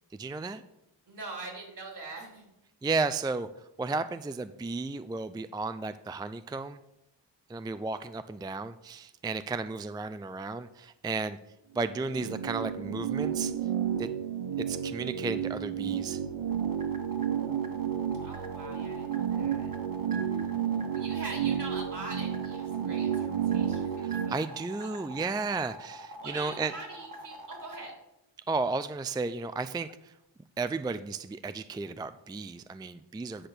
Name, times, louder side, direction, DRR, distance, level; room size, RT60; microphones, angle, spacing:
voice 1, 0.1-0.6 2.8-3.5 3.8-6.8 7.5-11.4 11.7-13.5 14.0-14.1 14.7-16.2 24.0-26.7 28.5-30.1 30.6-33.5, right 3 dB, 10° right, 12 dB, 0.4 m, -33 dB
voice 2, 1.1-2.4 18.2-19.7 20.9-24.3 24.8-25.2 26.2-27.9, right 3 dB, 65° right, 0 dB, 3.5 m, -43 dB
sound 1, 11.9-24.3, right 9 dB, 80° right, 0.7 m, -31 dB
sound 2, 16.5-27.9, right 2 dB, 50° right, 1.5 m, -44 dB
10.0 x 4.3 x 6.7 m, 0.86 s
cardioid pair, 60°, 44 cm